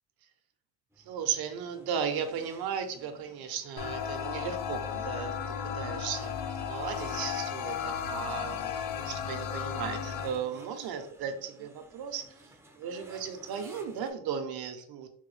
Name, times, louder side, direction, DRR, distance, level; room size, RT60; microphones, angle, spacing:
sound 1, 0.9-14.1, right 1 dB, 5° right, 0.4 m, -53 dB
voice 1, 1.0-6.3 6.7-12.4 12.8-15.1, right 7 dB, 55° right, 7 dB, 0.7 m, -36 dB
sound 2, 3.7-9.2, left 5 dB, 50° left, 0.7 m, -43 dB
sound 3, 3.8-10.3, left 8 dB, 90° left, 0.6 m, -35 dB
3.7 x 2.2 x 3.1 m, 0.64 s
cardioid pair, 115°, 43 cm